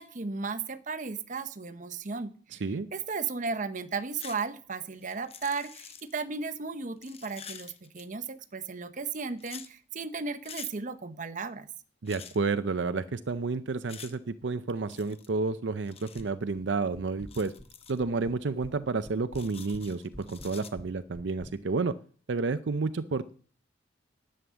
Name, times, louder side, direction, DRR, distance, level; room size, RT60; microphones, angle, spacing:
voice 1, 0.0-2.4 2.9-11.7, right 4 dB, 45° right, 11 dB, 0.9 m, -35 dB
voice 2, 2.5-2.9 12.0-17.5 17.9-21.9 22.3-23.3, right 4 dB, 75° right, 11 dB, 0.6 m, -30 dB
sound 1, 4.1-4.4 4.7-6.2 7.0-8.3 9.4-9.7 10.4-10.7 12.0-12.4 13.9-14.2 14.9-15.3 15.9-16.3 17.2-18.0 19.3-20.7, left 7 dB, 35° left, 0.9 m, -47 dB
sound 2, 16.2-16.7 16.9-17.7 18.0-18.8 19.0-21.5, equal, 5° left, 1.3 m, -47 dB
11.0 x 7.8 x 6.9 m, 0.43 s
head